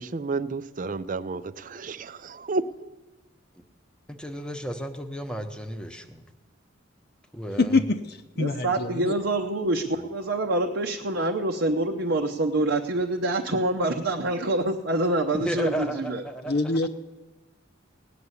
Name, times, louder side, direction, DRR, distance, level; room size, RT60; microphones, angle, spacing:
voice 1, 0.0-2.9 14.4-14.5, right 3 dB, 40° right, 15 dB, 0.5 m, -31 dB
voice 2, 4.1-6.2 7.3-7.8 15.3-16.6, right 1 dB, 5° left, 6 dB, 0.9 m, -33 dB
voice 3, 7.6-9.1 16.5-16.9, left 3 dB, 55° left, 6 dB, 0.6 m, -25 dB
voice 4, 8.4-16.2, right 2 dB, 65° right, 2 dB, 0.8 m, -26 dB
17.5 x 6.8 x 9.7 m, 1.2 s
head